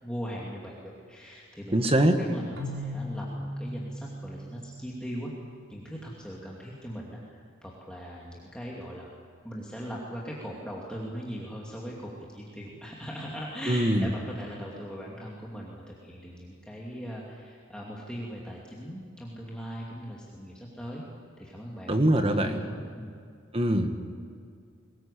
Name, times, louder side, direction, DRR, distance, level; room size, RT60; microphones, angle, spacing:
voice 1, 0.0-5.3 5.7-9.1 9.4-21.0 21.4-23.1, equal, 5° left, -4 dB, 2.7 m, -40 dB
voice 2, 1.7-2.2 13.7-14.0 21.9-22.6 23.5-23.9, right 1 dB, 30° right, 6 dB, 1.7 m, -23 dB
Keyboard (musical), 2.6-5.5, equal, 70° right, 3.7 m, -38 dB
23.5 x 20.0 x 8.5 m, 2.2 s
head